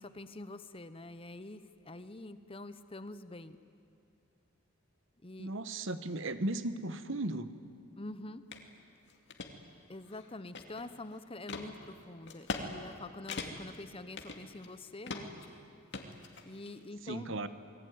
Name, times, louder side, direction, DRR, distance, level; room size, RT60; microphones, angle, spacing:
voice 1, 0.0-3.6 5.2-5.5 8.0-8.4 9.9-15.3 16.4-17.3, left 2 dB, 25° left, 12 dB, 0.9 m, -46 dB
voice 2, 5.4-7.5 17.0-17.5, right 2 dB, 60° right, 11 dB, 1.2 m, -36 dB
sound 1, 8.5-8.6 9.1-9.5 10.0-11.0 11.5-11.7 12.3-12.7 12.9-13.0 13.3-13.8 14.2-14.7 15.1-15.5 15.9-16.7, left 3 dB, 50° left, 2.4 m, -40 dB
28.5 x 20.5 x 9.5 m, 2.6 s
head